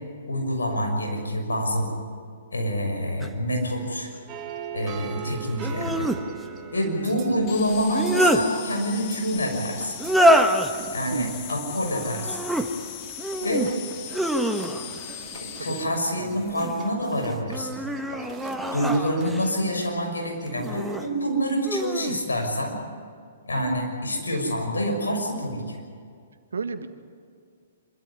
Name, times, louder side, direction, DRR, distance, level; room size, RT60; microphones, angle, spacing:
voice 1, 0.3-1.9 2.5-4.1 4.7-6.1 6.7-9.9 10.9-12.4 13.4-13.6 15.4-17.8 18.1-18.2 18.7-22.8 23.4-25.8, equal, 85° left, 2 dB, 6.2 m, -27 dB
sound 1, 3.2-3.3 5.6-6.2 7.7-8.4 10.0-10.7 12.2-12.7 13.2-13.7 14.1-15.0 16.2-16.9 17.5-19.5 20.6-21.1 21.6-22.2, equal, ahead, 1.4 m, -25 dB
sound 2, 4.3-20.9, right 8 dB, 25° right, 2.2 m, -43 dB
sound 3, 7.5-15.8, left 11 dB, 40° left, 1.9 m, -39 dB
voice 2, 16.1-16.4 19.3-19.4 26.5-26.9, right 5 dB, 80° right, 10 dB, 1.6 m, -32 dB
26.5 x 13.5 x 9.7 m, 2.1 s
hypercardioid pair, 125°, 0 cm